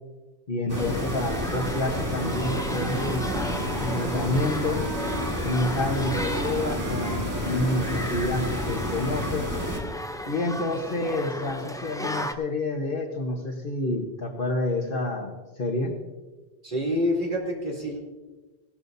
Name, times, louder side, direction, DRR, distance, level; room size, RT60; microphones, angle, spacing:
voice 1, 0.5-3.4 3.8-4.8 5.4-9.5 10.3-15.9, left 2 dB, 55° left, 2 dB, 1.5 m, -28 dB
sound 1, 0.7-12.3, left 1 dB, 5° left, 0.3 m, -35 dB
sound 2, 0.7-9.8, equal, 20° right, 1.5 m, -30 dB
Wind instrument woodwind instrument, 2.1-5.3 6.0-8.7, right 4 dB, 85° right, 1.1 m, -39 dB
voice 2, 16.6-18.0, left 1 dB, 50° right, -4 dB, 3.5 m, -27 dB
17.5 x 13.5 x 2.7 m, 1.2 s
omnidirectional pair, 1.1 m